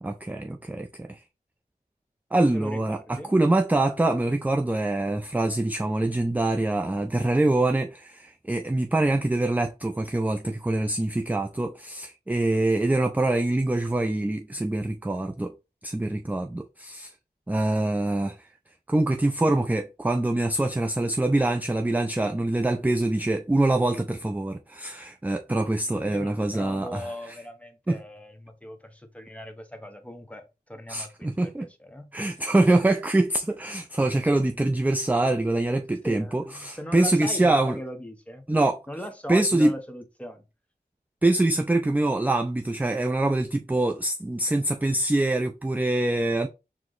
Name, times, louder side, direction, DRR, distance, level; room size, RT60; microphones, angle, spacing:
voice 1, 0.0-1.2 2.3-15.5 15.8-17.1 17.5-18.4 18.9-27.0 27.9-28.0 30.9-31.7 32.1-37.8 38.5-38.8 39.3-39.7 41.2-46.5, right 2 dB, 10° right, 0.3 m, -24 dB
voice 2, 2.5-3.3 26.0-32.1 34.0-34.5 36.0-38.5 38.9-40.4, equal, 10° left, 0.8 m, -39 dB
4.6 x 2.1 x 3.8 m
wide cardioid pair, 60°, 17 cm